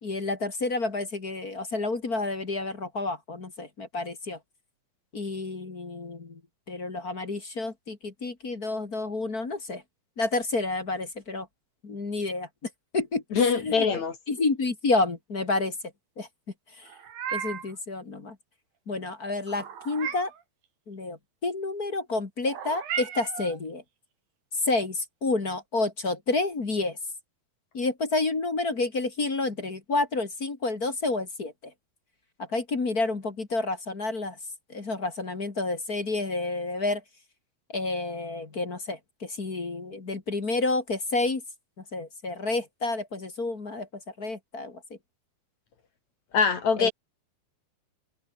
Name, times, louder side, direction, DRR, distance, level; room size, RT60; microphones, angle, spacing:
voice 1, 0.0-4.4 5.1-6.4 6.7-9.8 10.2-11.5 11.8-13.9 14.3-15.7 16.2-16.3 16.8-16.9 17.3-18.4 18.9-20.3 20.9-23.8 24.5-27.0 27.7-31.7 32.4-34.4 34.7-37.0 37.7-41.4 41.9-44.8 46.8-46.9, left 3 dB, 30° left, 2.2 m, -29 dB
voice 2, 13.3-14.1 46.3-46.9, left 5 dB, 50° left, 3.5 m, -23 dB
Meow, 16.8-17.8 19.5-20.4 22.5-23.6, right 8 dB, 65° right, 4.4 m, -35 dB
open air
omnidirectional pair, 4.5 m